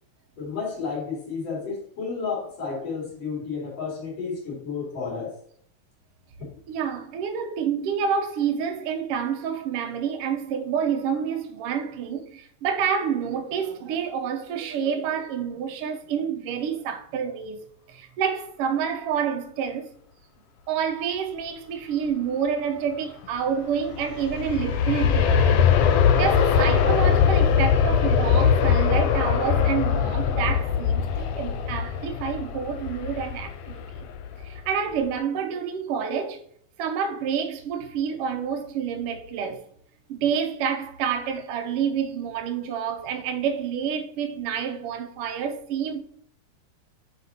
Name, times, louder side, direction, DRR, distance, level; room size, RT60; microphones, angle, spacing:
voice 1, 0.4-5.3, left 5 dB, 60° left, 3.6 m, -31 dB
voice 2, 6.7-19.9 20.7-25.7 26.1-34.0 34.4-36.4 36.8-39.7 40.1-46.0, right 7 dB, 70° right, 1.5 m, -28 dB
Aircraft, 23.7-34.6 35.0-35.1, left 7 dB, 80° left, 1.4 m, -21 dB
8.0 x 5.2 x 2.8 m
omnidirectional pair, 3.3 m